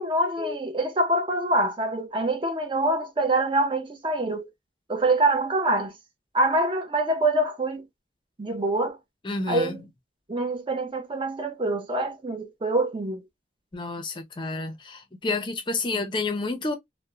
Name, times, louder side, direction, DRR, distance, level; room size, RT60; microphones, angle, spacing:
voice 1, 0.0-4.5 4.9-5.9 6.3-7.9 8.4-9.0 9.5-9.8 10.3-13.2, right 2 dB, 30° right, 0.5 m, -25 dB
voice 2, 9.2-9.8 13.7-16.8, left 3 dB, 25° left, 0.5 m, -30 dB
2.8 x 2.0 x 2.3 m
head